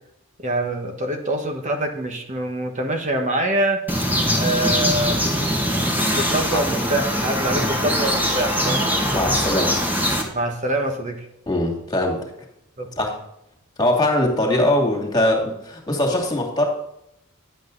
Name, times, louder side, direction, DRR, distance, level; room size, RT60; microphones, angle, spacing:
voice 1, 0.4-3.8 4.4-5.4 6.1-8.9 10.3-11.3 12.8-12.9, right 1 dB, 35° right, 4 dB, 1.4 m, -25 dB
sound 1, 3.9-10.2, equal, 10° right, 2.0 m, -22 dB
voice 2, 7.5-7.8 9.1-9.7 11.5-12.3 13.0-13.2 13.8-16.7, left 1 dB, 20° left, 1 dB, 2.6 m, -21 dB
10.5 x 8.4 x 4.0 m, 0.78 s
head